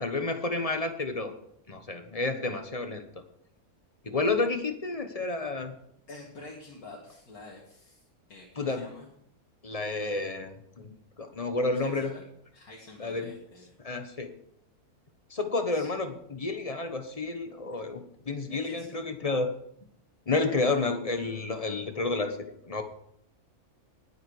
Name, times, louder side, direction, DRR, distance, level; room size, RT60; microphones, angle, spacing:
voice 1, 0.0-1.3 1.7-3.2 4.0-5.8 8.6-8.9 9.6-10.9 11.2-12.1 13.0-13.3 13.8-14.3 15.3-19.5 20.3-22.8, left 3 dB, 25° left, 7 dB, 1.2 m, -30 dB
voice 2, 6.1-8.0 8.3-9.1 11.7-12.2 12.5-13.7 15.7-15.9 18.5-18.9 20.6-20.9, left 2 dB, 75° left, -2 dB, 2.6 m, -48 dB
19.0 x 8.3 x 4.9 m, 0.73 s
omnidirectional pair, 1.6 m